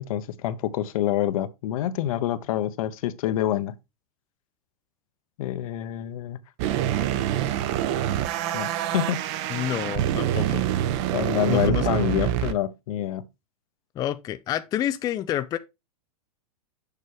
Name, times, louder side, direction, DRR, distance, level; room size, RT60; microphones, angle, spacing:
voice 1, 0.0-3.7 5.4-6.4 8.5-9.2 11.1-13.2, left 12 dB, 65° left, 0.9 m, -27 dB
sound 1, 6.6-12.5, right 11 dB, 50° right, 0.8 m, -26 dB
voice 2, 9.5-10.6 11.4-11.9 14.0-15.6, left 11 dB, 20° left, 0.4 m, -28 dB
6.7 x 6.2 x 3.3 m
hypercardioid pair, 135°, 19 cm